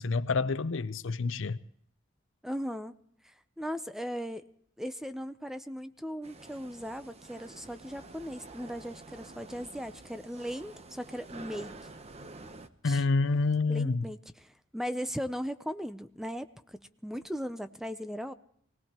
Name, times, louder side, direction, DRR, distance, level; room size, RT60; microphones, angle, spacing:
voice 1, 0.0-1.6 12.8-14.1, left 3 dB, 70° left, 0.6 m, -28 dB
voice 2, 2.4-2.9 3.6-4.4 4.8-11.9 12.8-13.0 13.7-18.3, equal, ahead, 0.5 m, -38 dB
sound 1, 6.2-12.7, right 3 dB, 35° right, 0.8 m, -49 dB
24.0 x 18.5 x 2.9 m
head